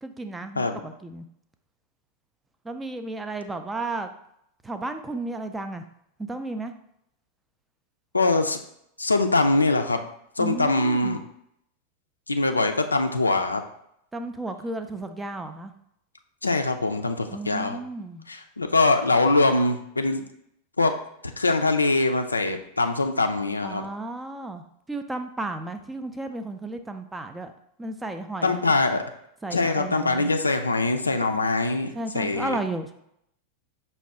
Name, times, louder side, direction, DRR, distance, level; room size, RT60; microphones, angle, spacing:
voice 1, 0.0-1.3 2.6-4.1 4.6-5.8 6.2-6.7 10.4-11.2 14.1-15.7 17.3-18.3 23.6-27.5 27.8-28.6 29.4-30.3 31.9-32.9, right 2 dB, 10° right, 7 dB, 0.3 m, -33 dB
voice 2, 8.1-8.6 9.0-10.0 10.4-11.2 12.3-13.6 16.4-17.8 18.3-20.2 20.8-20.9 21.4-23.8 28.4-29.0 29.5-32.6, left 2 dB, 80° left, 6 dB, 0.3 m, -23 dB
5.4 x 2.2 x 3.4 m, 0.75 s
figure-of-eight pair, 90°, 0 cm